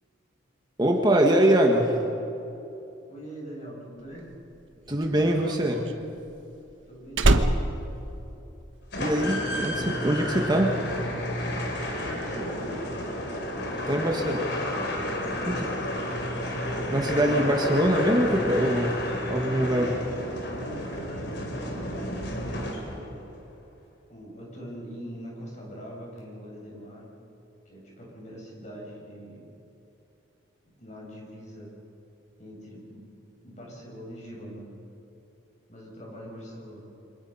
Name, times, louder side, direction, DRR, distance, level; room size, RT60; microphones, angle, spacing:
voice 1, 0.8-2.0 4.9-5.8 9.0-10.7 13.9-14.4 15.5-15.7 16.9-18.9 19.3-19.9, right 1 dB, 20° right, 1 dB, 1.7 m, -23 dB
voice 2, 3.1-4.4 6.9-7.8 12.0-12.9 15.3-16.2 19.6-22.1 22.4-23.4 24.1-27.1 27.7-29.5 30.7-31.7 32.4-33.1 33.4-34.7 35.7-36.9, equal, 35° left, -2 dB, 7.2 m, -43 dB
Slam, 4.2-9.0 9.2-9.7, right 2 dB, 75° right, 1.3 m, -26 dB
sound 1, 8.9-23.2, left 1 dB, 55° left, 3.9 m, -31 dB
28.0 x 25.5 x 5.7 m, 2.9 s
head